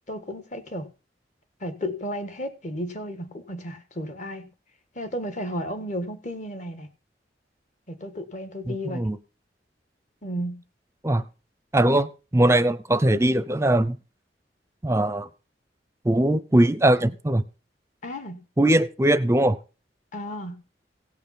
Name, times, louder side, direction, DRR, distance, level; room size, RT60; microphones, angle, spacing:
voice 1, 0.1-0.9 1.6-4.5 4.9-6.9 7.9-9.1 10.2-10.6 18.0-18.4 20.1-20.6, equal, 45° left, 1.6 m, -33 dB
voice 2, 8.7-9.2 11.0-11.2 11.7-14.0 14.8-15.3 16.0-17.4 18.6-19.6, right 1 dB, 15° right, 0.6 m, -21 dB
17.0 x 5.7 x 5.8 m
head